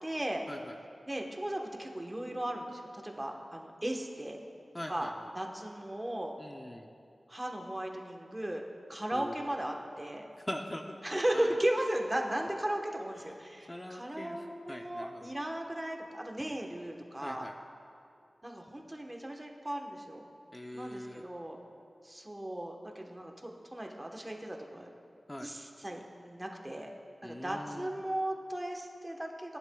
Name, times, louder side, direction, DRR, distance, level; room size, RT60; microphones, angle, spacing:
voice 1, 0.0-0.4 1.1-4.4 4.9-5.1 5.3-6.3 7.3-10.3 11.0-17.5 18.4-20.2 20.7-21.6 22.0-24.9 25.4-26.9 27.2-29.6, right 1 dB, 20° right, 1 dB, 1.1 m, -36 dB
voice 2, 4.7-5.3 6.4-6.9 9.1-9.6 10.4-11.5 13.2-13.3 13.7-15.3 17.2-17.5 20.5-21.2 25.3-25.5 27.2-27.9, left 1 dB, 20° left, 2 dB, 0.6 m, -42 dB
18.5 x 10.5 x 2.3 m, 2.4 s
wide cardioid pair, 80°, 0 cm